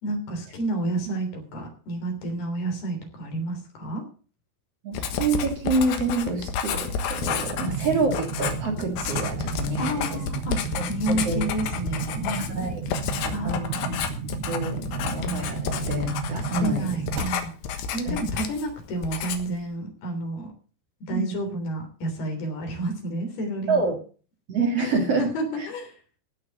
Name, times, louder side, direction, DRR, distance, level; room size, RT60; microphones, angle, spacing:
voice 1, 0.0-4.0 7.6-7.8 9.8-10.6 10.9-12.8 13.3-13.8 16.5-17.5 17.9-20.5 21.1-23.9 25.2-25.9, right 1 dB, 70° left, 4 dB, 5.2 m, -30 dB
voice 2, 4.8-10.2 10.7-11.4 12.6-12.8 13.4-14.0 14.5-16.9 18.1-18.2 21.1-21.3 23.7-23.9 24.5-25.3 25.6-25.7, right 3 dB, 45° right, 2 dB, 2.5 m, -27 dB
Writing, 4.9-18.7 19.0-19.6, left 7 dB, 90° left, 3.5 m, -31 dB
sound 1, 7.2-17.2, right 6 dB, 80° right, 8.1 m, -33 dB
16.0 x 5.8 x 7.7 m, 0.39 s
omnidirectional pair, 4.7 m